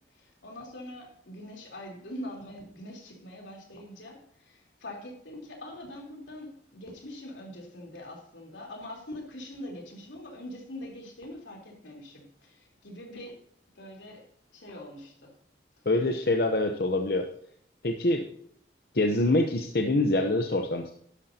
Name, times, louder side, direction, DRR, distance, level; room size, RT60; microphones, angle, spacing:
voice 1, 0.1-13.4 13.8-14.2 14.5-15.3, left 1 dB, 85° left, 0 dB, 3.5 m, -43 dB
voice 2, 15.9-17.2 17.8-18.3 18.9-20.9, left 2 dB, 55° left, 4 dB, 0.8 m, -25 dB
12.0 x 11.5 x 2.8 m, 0.66 s
head